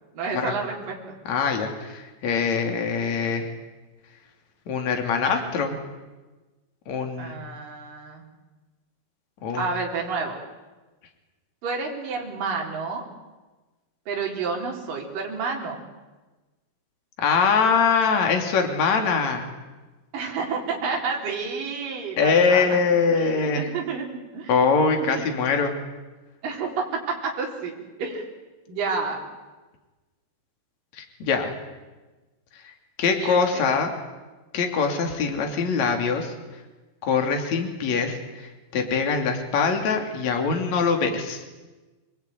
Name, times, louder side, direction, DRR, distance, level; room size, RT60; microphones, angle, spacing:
voice 1, 0.1-1.0 7.2-8.2 9.6-10.4 11.6-13.0 14.1-15.8 20.1-22.8 23.1-24.1 24.3-24.5 25.1-25.3 26.4-27.7 28.0-28.3 28.7-29.2 33.1-33.7, right 4 dB, 50° right, -1 dB, 5.7 m, -30 dB
voice 2, 1.3-3.5 4.7-5.8 6.9-7.4 9.4-9.7 17.2-19.5 22.2-23.7 24.5-25.7 30.9-31.5 33.0-33.9 34.5-36.3 37.0-41.4, left 5 dB, 45° left, 3 dB, 4.0 m, -23 dB
30.0 x 21.0 x 9.4 m, 1.2 s
omnidirectional pair, 5.0 m